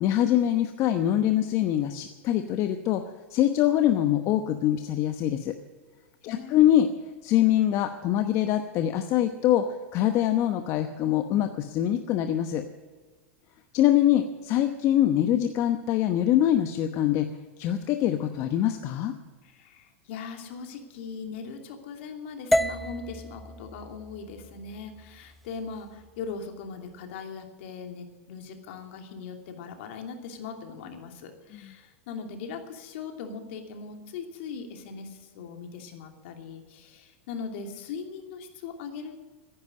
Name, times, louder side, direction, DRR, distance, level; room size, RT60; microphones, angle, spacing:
voice 1, 0.0-3.0 3.3-5.5 6.2-6.9 7.2-12.6 13.7-17.3 17.6-19.1 31.6-31.7, left 12 dB, 45° left, 8 dB, 1.0 m, -24 dB
voice 2, 6.2-6.7 19.4-39.1, left 5 dB, 65° left, 4 dB, 2.7 m, -40 dB
sound 1, 22.5-26.6, equal, ahead, 0.3 m, -32 dB
15.0 x 10.5 x 7.7 m, 1.4 s
hypercardioid pair, 115°, 7 cm